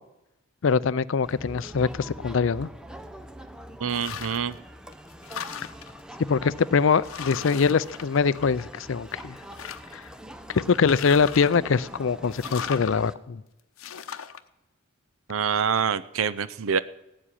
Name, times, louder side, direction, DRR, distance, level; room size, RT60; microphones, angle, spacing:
voice 1, 0.6-2.7 6.3-9.4 9.9-10.0 10.5-13.4, left 5 dB, 65° left, 0.5 m, -23 dB
Crowd, 1.2-13.1, equal, 5° right, 0.6 m, -44 dB
voice 2, 3.8-4.5 15.3-16.8, right 7 dB, 75° right, 0.5 m, -26 dB
sound 1, 3.9-4.5 4.9-6.0 6.6-6.7 7.0-8.8 9.1-10.0 10.7-11.7 12.3-12.9 13.8-14.4, left 8 dB, 85° left, 0.8 m, -37 dB
16.5 x 7.5 x 10.0 m
head